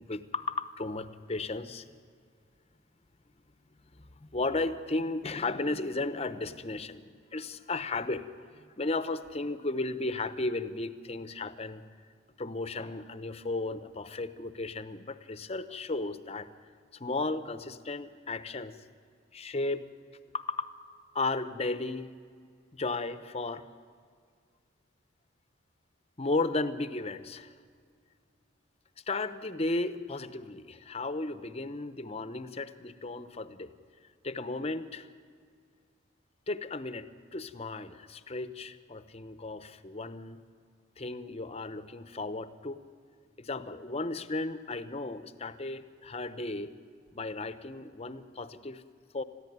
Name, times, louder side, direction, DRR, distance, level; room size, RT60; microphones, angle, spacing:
voice 1, 0.1-1.9 3.9-8.2 8.5-11.8 12.4-16.5 16.9-18.8 19.3-19.9 20.3-20.7 21.1-22.1 22.7-23.6 26.2-27.5 29.1-33.7 34.2-35.1 36.5-40.4 41.0-42.8 43.4-46.7 47.1-48.8 49.1-49.2, left 2 dB, 30° left, 12 dB, 0.8 m, -34 dB
21.5 x 14.5 x 9.3 m, 2.1 s
head